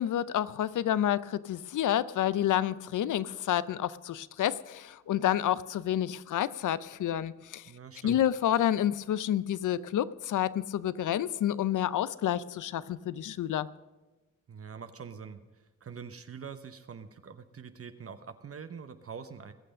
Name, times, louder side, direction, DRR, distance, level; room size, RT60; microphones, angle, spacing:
voice 1, 0.0-7.6 8.0-13.7, left 11 dB, 75° left, 18 dB, 0.6 m, -29 dB
voice 2, 7.7-8.2 14.5-19.5, right 6 dB, 50° right, 10 dB, 0.8 m, -44 dB
20.0 x 6.8 x 6.4 m, 1.2 s
cardioid pair, 65°, 31 cm